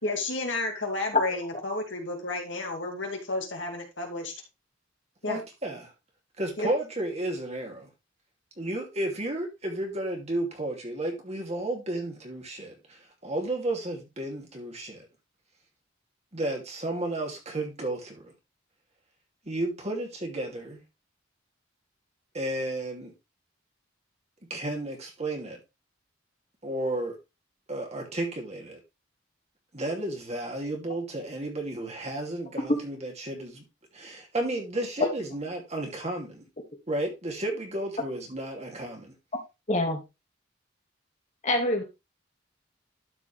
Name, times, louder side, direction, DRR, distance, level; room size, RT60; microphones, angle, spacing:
voice 1, 0.0-4.3 5.2-5.4 6.6-6.7, left 2 dB, 70° left, 2.3 m, -32 dB
voice 2, 5.3-5.9 6.4-7.9 8.6-15.1 16.3-18.3 19.5-20.8 22.3-23.1 24.5-25.6 26.6-27.2 27.7-28.8 29.7-33.6 33.9-36.4 36.9-39.1, right 1 dB, 35° right, 2.6 m, -32 dB
voice 3, 39.7-40.0 41.4-41.8, left 1 dB, 35° left, 2.1 m, -25 dB
12.0 x 5.2 x 3.3 m
head